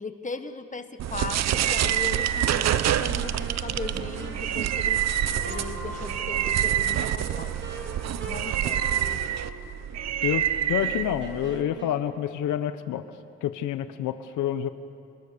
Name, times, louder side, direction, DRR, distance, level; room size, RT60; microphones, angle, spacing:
voice 1, 0.0-5.0 5.4-7.6 8.3-8.8 9.1-9.2, left 4 dB, 25° left, 9 dB, 1.4 m, -38 dB
sound 1, 1.0-11.6, right 10 dB, 60° right, 0.8 m, -27 dB
sound 2, 1.6-9.2, left 1 dB, 5° left, 1.2 m, -47 dB
Wind instrument woodwind instrument, 3.0-12.0, right 3 dB, 40° right, 3.6 m, -43 dB
voice 2, 10.2-13.0 13.4-14.7, left 11 dB, 80° left, 11 dB, 1.0 m, -28 dB
28.0 x 20.5 x 6.8 m, 2.6 s
cardioid pair, 90°, 30 cm